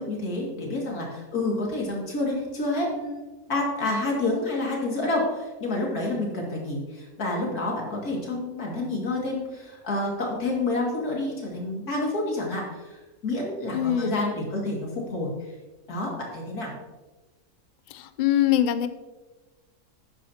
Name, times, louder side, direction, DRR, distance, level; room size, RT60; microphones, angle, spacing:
voice 1, 0.0-15.3 15.9-16.7, left 2 dB, 85° left, -2 dB, 2.8 m, -29 dB
voice 2, 13.7-14.2 17.9-18.9, left 11 dB, 70° left, 11 dB, 0.4 m, -23 dB
11.5 x 9.5 x 2.9 m, 1.2 s
omnidirectional pair, 1.6 m